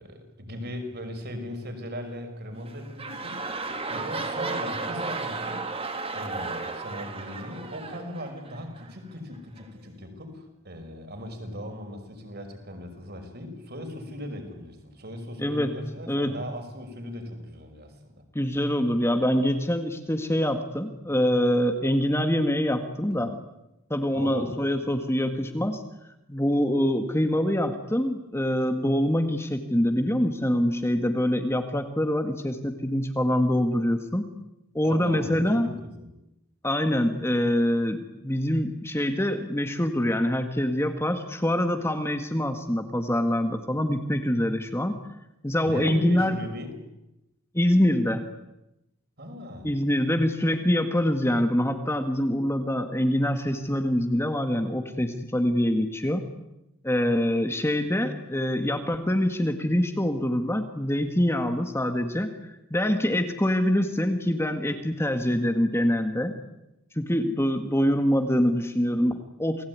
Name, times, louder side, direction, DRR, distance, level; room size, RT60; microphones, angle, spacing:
voice 1, 0.0-3.5 3.9-5.6 6.1-18.0 21.0-21.2 23.1-23.3 24.1-24.6 34.8-36.1 45.6-46.7 49.2-49.7, left 1 dB, 50° right, 5 dB, 6.1 m, -38 dB
sound 1, 2.5-8.9 9.6-9.7, right 3 dB, 25° right, 3.0 m, -34 dB
voice 2, 15.4-15.7 16.1-16.4 18.4-23.3 23.9-25.8 26.3-34.3 34.7-35.7 36.6-45.0 45.4-46.4 47.5-48.2 49.6-56.3 56.8-62.4 62.7-66.4 67.0-69.7, equal, 10° left, 6 dB, 1.8 m, -25 dB
29.0 x 20.0 x 9.7 m, 0.91 s
head